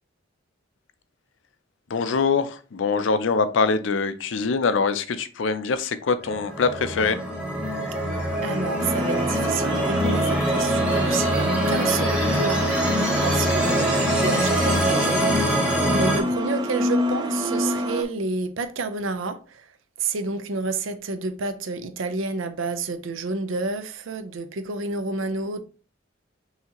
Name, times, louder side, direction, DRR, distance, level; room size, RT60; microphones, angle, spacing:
voice 1, 1.9-7.2, left 4 dB, 75° left, 0.5 m, -23 dB
sound 1, 6.2-16.2, right 1 dB, 5° right, 1.0 m, -23 dB
voice 2, 8.4-12.7 13.2-25.6, right 3 dB, 90° right, 0.6 m, -29 dB
sound 2, 8.8-18.0, equal, 20° right, 0.5 m, -28 dB
5.7 x 2.8 x 2.9 m
head